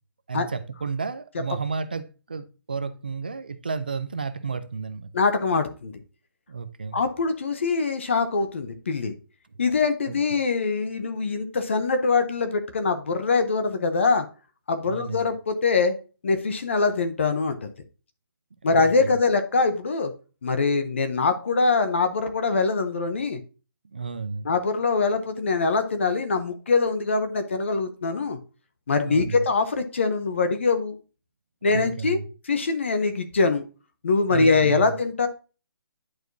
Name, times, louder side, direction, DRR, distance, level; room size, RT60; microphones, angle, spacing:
voice 1, 0.3-5.1 6.5-7.0 10.0-10.1 14.8-15.3 18.7-19.2 23.9-24.5 29.1-29.5 31.7-32.2 34.3-34.9, right 5 dB, 25° right, 0.3 m, -32 dB
voice 2, 5.1-5.9 6.9-9.1 9.6-14.3 14.7-15.9 16.2-17.7 18.6-20.1 20.4-23.4 24.4-28.4 28.9-31.0 31.6-32.2 32.4-33.6 34.0-35.3, left 4 dB, 30° left, 0.6 m, -23 dB
10.5 x 4.6 x 2.6 m
hypercardioid pair, 180°, 12 cm